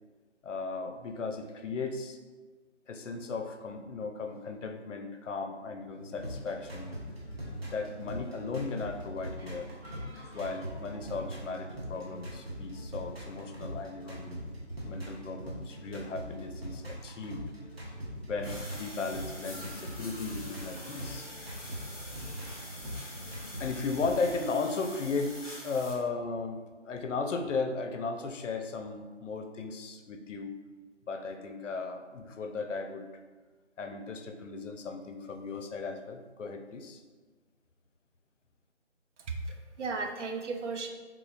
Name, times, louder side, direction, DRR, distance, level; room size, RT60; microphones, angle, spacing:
voice 1, 0.4-2.2 2.9-6.9 7.7-9.7 10.3-14.4 14.9-17.4 18.3-21.3 23.6-30.5 31.1-33.1 33.8-37.0, left 4 dB, 80° left, 6 dB, 0.5 m, -36 dB
sound 1, 5.9-24.4, equal, 55° right, 1.0 m, -42 dB
sound 2, 18.4-25.9, left 1 dB, 30° left, 0.8 m, -46 dB
voice 2, 39.2-40.9, right 4 dB, 75° right, 4 dB, 0.6 m, -35 dB
3.7 x 3.0 x 2.4 m, 1.4 s
figure-of-eight pair, 175°, 36 cm